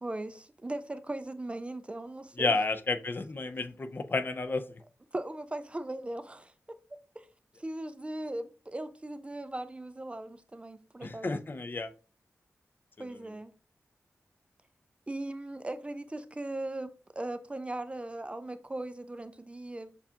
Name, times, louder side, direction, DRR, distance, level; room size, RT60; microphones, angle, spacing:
voice 1, 0.0-2.6 5.1-6.5 6.9-7.3 7.6-11.3 13.0-13.5 15.1-19.9, right 1 dB, 20° right, 0.3 m, -38 dB
voice 2, 2.4-4.6 11.0-11.9, left 3 dB, 40° left, 0.4 m, -31 dB
7.0 x 2.3 x 2.8 m
wide cardioid pair, 105°, 5 cm